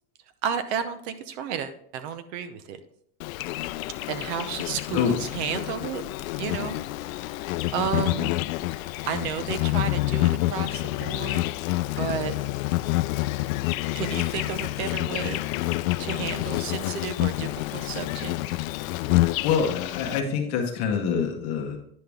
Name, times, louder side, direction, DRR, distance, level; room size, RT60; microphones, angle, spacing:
voice 1, 0.4-2.8 4.1-6.0 6.4-6.8 7.1-7.2 7.7-8.3 9.1-11.4 12.0-12.4 13.9-15.4 16.0-18.6, right 8 dB, 55° right, 11 dB, 0.8 m, -32 dB
Insect, 3.2-20.2, left 18 dB, 80° left, 0.5 m, -28 dB
voice 2, 19.4-21.8, left 6 dB, 35° left, 2 dB, 1.1 m, -25 dB
9.8 x 5.7 x 3.5 m, 0.67 s
supercardioid pair, 170°, 41 cm